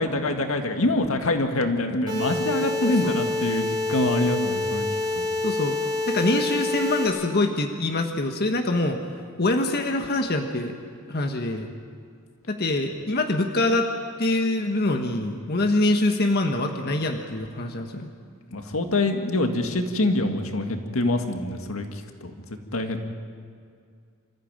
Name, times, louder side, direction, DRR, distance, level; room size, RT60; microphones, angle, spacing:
voice 1, 0.0-4.9 5.1-5.3 18.5-21.9 22.2-22.3 22.7-23.1, left 2 dB, 80° left, 5 dB, 1.9 m, -25 dB
sound 1, 2.1-7.1, left 2 dB, 20° right, 6.8 m, -27 dB
voice 2, 2.8-3.2 5.4-5.8 6.1-9.0 9.4-10.7 11.1-11.7 12.5-13.9 14.2-18.1, left 2 dB, 50° left, 4 dB, 1.5 m, -24 dB
26.5 x 14.5 x 8.9 m, 2.2 s
head